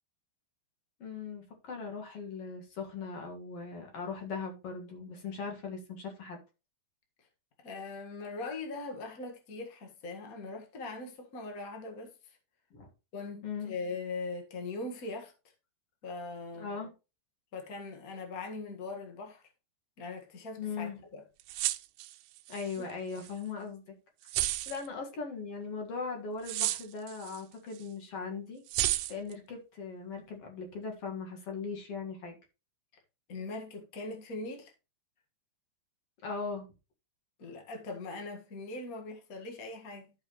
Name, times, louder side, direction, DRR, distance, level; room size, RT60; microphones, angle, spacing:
voice 1, 1.0-6.4 12.7-12.9 13.4-13.7 16.5-16.9 20.6-21.0 22.5-24.0 24.7-28.6 29.1-32.4 36.2-36.7, left 5 dB, 45° left, 2.3 m, -39 dB
voice 2, 7.6-12.4 13.1-15.3 16.0-16.7 17.5-19.4 20.0-21.2 22.8-22.9 33.3-34.7 37.4-40.1, left 3 dB, 70° left, 0.8 m, -41 dB
sound 1, 21.4-22.8 23.2-23.3 24.3-24.9 26.5-27.4 27.8-27.9 28.7-29.3, right 16 dB, 85° right, 2.6 m, -32 dB
13.5 x 5.7 x 3.1 m
omnidirectional pair, 4.7 m